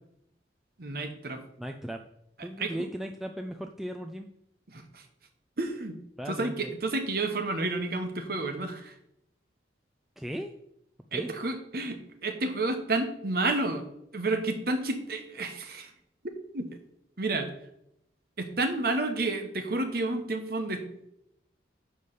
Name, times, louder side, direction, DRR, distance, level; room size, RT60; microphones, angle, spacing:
voice 1, 0.8-1.4 2.4-2.7 4.7-5.0 5.6-6.0 6.3-8.9 11.1-12.0 12.2-13.8 14.1-15.9 16.5-16.8 17.2-17.5 18.4-21.1, right 2 dB, 55° right, 6 dB, 1.1 m, -30 dB
voice 2, 1.6-2.0 2.4-4.3 6.2-6.8 10.2-10.5 11.1-11.3, equal, ahead, 3 dB, 0.4 m, -37 dB
9.8 x 3.4 x 6.7 m, 0.79 s
head